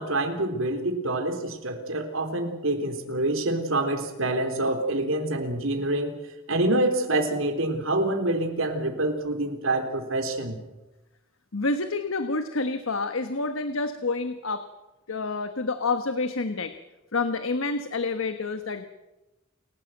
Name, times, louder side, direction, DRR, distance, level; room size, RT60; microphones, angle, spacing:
voice 1, 0.0-6.2 6.5-10.6, right 2 dB, 85° right, 5 dB, 3.8 m, -26 dB
voice 2, 11.5-14.7 15.1-16.7 17.1-18.8, left 3 dB, 80° left, 9 dB, 1.3 m, -28 dB
29.0 x 14.5 x 7.9 m, 1.0 s
head